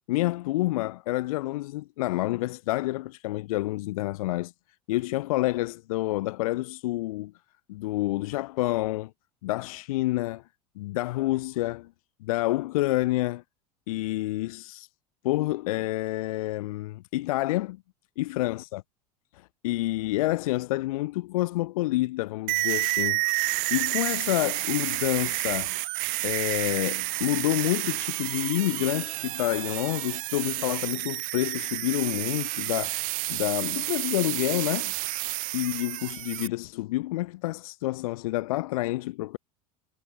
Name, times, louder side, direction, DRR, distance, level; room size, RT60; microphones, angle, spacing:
voice 1, 0.1-4.5 4.9-7.3 7.7-9.1 9.4-10.4 10.8-11.9 12.2-13.4 13.9-14.9 15.2-17.8 18.2-18.8 19.3-23.2 23.7-25.7 26.2-34.9 35.5-39.4, left 18 dB, 65° left, 0.4 m, -28 dB
sound 1, 22.5-36.5, right 26 dB, 45° right, 0.4 m, -30 dB
figure-of-eight pair, 75°, 20 cm